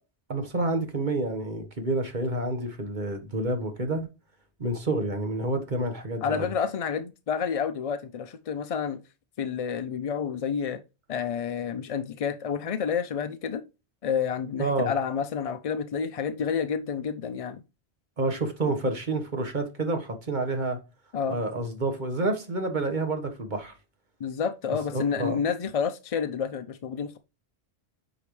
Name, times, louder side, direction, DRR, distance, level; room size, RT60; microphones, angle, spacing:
voice 1, 0.3-4.1 4.6-6.5 14.6-14.9 18.2-20.8 21.3-23.7 24.9-25.4, right 2 dB, 45° right, 1.4 m, -29 dB
voice 2, 6.2-9.0 9.4-10.8 11.1-13.6 14.0-17.6 21.1-21.4 24.2-27.2, left 7 dB, 55° left, 0.4 m, -29 dB
8.4 x 4.7 x 3.2 m
omnidirectional pair, 1.1 m